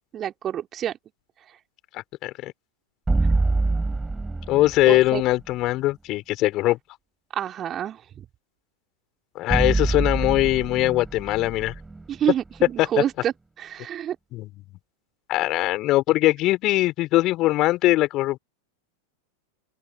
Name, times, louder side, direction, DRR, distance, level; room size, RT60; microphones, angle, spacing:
voice 1, 0.1-1.0 4.9-5.2 7.3-8.2 12.1-14.2, right 10 dB, 25° right, 2.8 m, -28 dB
voice 2, 1.9-2.5 4.5-6.8 9.3-11.7 12.8-12.9 14.3-14.5 15.3-18.4, left 17 dB, 35° left, 4.7 m, -21 dB
sound 1, 3.1-5.2 9.5-12.7, right 3 dB, 10° right, 4.4 m, -25 dB
open air
figure-of-eight pair, 90°, 0 cm